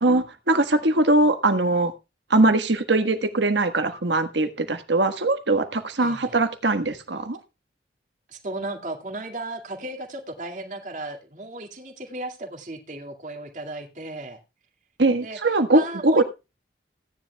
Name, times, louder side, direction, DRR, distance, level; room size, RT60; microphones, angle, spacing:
voice 1, 0.0-1.9 2.3-7.4 15.0-16.2, right 2 dB, 90° right, 1.5 m, -21 dB
voice 2, 6.0-6.4 8.3-14.4 15.2-16.2, right 2 dB, 45° right, 2.1 m, -35 dB
16.5 x 10.5 x 2.3 m
head